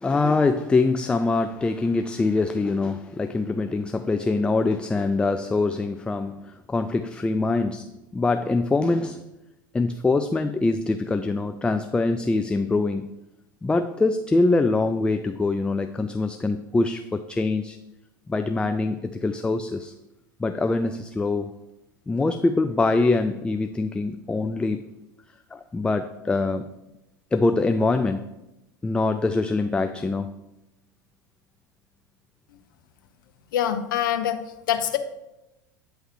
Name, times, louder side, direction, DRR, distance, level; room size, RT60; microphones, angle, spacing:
voice 1, 0.0-9.2 9.7-13.1 13.6-17.8 18.3-19.9 20.4-21.5 22.1-24.8 25.5-26.7 27.3-28.3 28.8-30.4, left 3 dB, 10° left, 8 dB, 0.3 m, -24 dB
voice 2, 33.5-34.4 34.7-35.0, left 10 dB, 70° left, 8 dB, 0.7 m, -24 dB
9.2 x 3.2 x 4.6 m, 0.94 s
hypercardioid pair, 85°, 11 cm